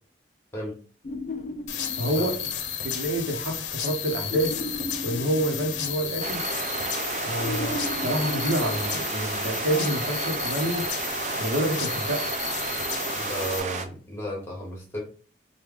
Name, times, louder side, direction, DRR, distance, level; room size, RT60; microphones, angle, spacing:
sound 1, 1.0-2.7 4.3-6.4 7.4-9.5, left 2 dB, 40° left, 0.3 m, -36 dB
sound 2, 1.7-13.6, left 8 dB, 90° left, 0.6 m, -33 dB
voice 1, 2.0-2.4 2.8-4.6 5.0-6.4 7.2-10.9 11.3-12.3, right 1 dB, 85° right, 0.8 m, -28 dB
sound 3, 6.2-13.9, right 4 dB, 40° right, 0.4 m, -32 dB
voice 2, 13.2-15.0, equal, 15° left, 1.1 m, -33 dB
3.2 x 2.2 x 3.5 m
head